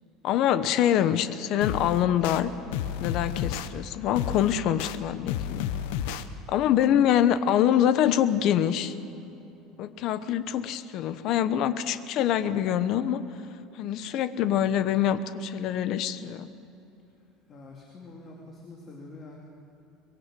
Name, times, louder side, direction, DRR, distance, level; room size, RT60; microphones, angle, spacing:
voice 1, 0.2-2.5 3.0-5.7 6.5-9.0 9.8-13.2 13.8-16.5, left 10 dB, 45° left, 12 dB, 1.0 m, -25 dB
sound 1, 1.6-2.4 2.7-3.7 4.1-5.0 5.3-6.2, left 10 dB, 85° left, 1.2 m, -31 dB
voice 2, 17.2-19.4, left 2 dB, 25° left, -1 dB, 2.7 m, -46 dB
24.0 x 22.0 x 7.7 m, 2.8 s
cardioid pair, 170°, 0 cm